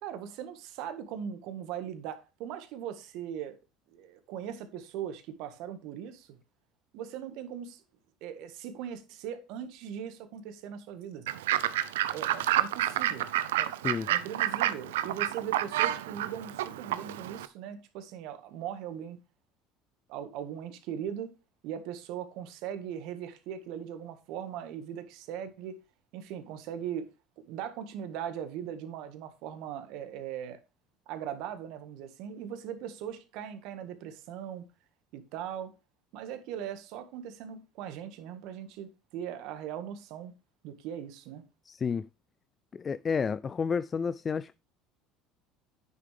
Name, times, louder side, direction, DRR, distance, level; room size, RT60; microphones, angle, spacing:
voice 1, 0.0-3.6 3.9-6.3 6.9-7.8 8.2-11.3 12.1-13.3 13.6-13.7 14.1-19.2 20.1-21.3 21.6-25.8 26.1-27.1 27.5-30.6 31.1-34.7 35.1-35.7 36.1-40.3 40.6-41.4, right 9 dB, 70° right, 1.6 m, -39 dB
Fowl / Bird, 11.3-17.5, right 13 dB, 90° right, 0.6 m, -29 dB
voice 2, 41.7-42.1 42.7-44.5, left 6 dB, 30° left, 0.3 m, -30 dB
9.6 x 6.8 x 3.4 m
supercardioid pair, 90°, 0 cm